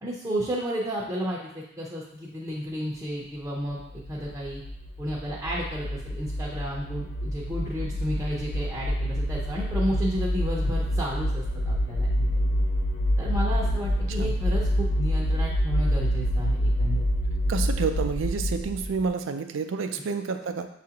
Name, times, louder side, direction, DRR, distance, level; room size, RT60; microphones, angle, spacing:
voice 1, 0.0-4.6 5.0-12.4 13.2-17.0 19.9-20.0, equal, 15° right, -5 dB, 0.6 m, -32 dB
sound 1, 3.8-19.1, equal, 75° left, 0.5 m, -27 dB
voice 2, 17.5-20.7, right 5 dB, 70° right, 7 dB, 0.4 m, -29 dB
6.1 x 2.4 x 2.8 m, 0.76 s
head